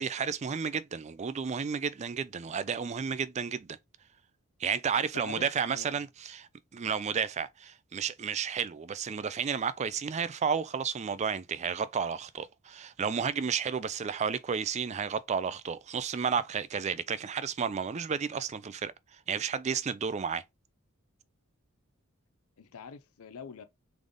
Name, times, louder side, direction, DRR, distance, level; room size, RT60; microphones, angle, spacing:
voice 1, 0.0-3.8 4.6-20.4, right 6 dB, 30° right, 0.4 m, -32 dB
voice 2, 5.1-6.1 22.6-23.6, left 6 dB, 80° left, 0.5 m, -45 dB
3.9 x 3.4 x 3.6 m
head